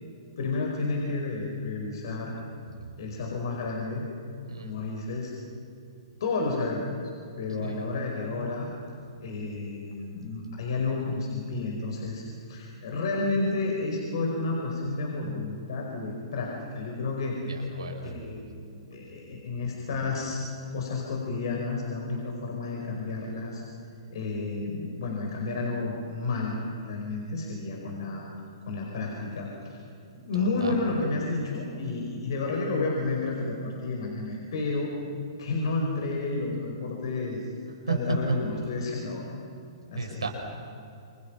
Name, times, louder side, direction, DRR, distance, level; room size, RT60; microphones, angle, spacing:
voice 1, 0.4-2.3 3.0-4.1 4.6-5.3 6.2-6.8 7.4-8.7 9.2-12.2 12.5-17.4 18.0-20.4 20.7-23.6 24.1-28.2 28.6-29.8 30.3-34.9 35.4-37.5 37.9-39.3 39.9-40.2, left 3 dB, 65° left, -1 dB, 5.0 m, -31 dB
voice 2, 17.5-18.0 30.4-30.7 37.9-38.0 39.9-40.3, right 5 dB, 85° right, 1 dB, 5.3 m, -33 dB
28.0 x 26.5 x 5.9 m, 2.6 s
hypercardioid pair, 120°, 3 cm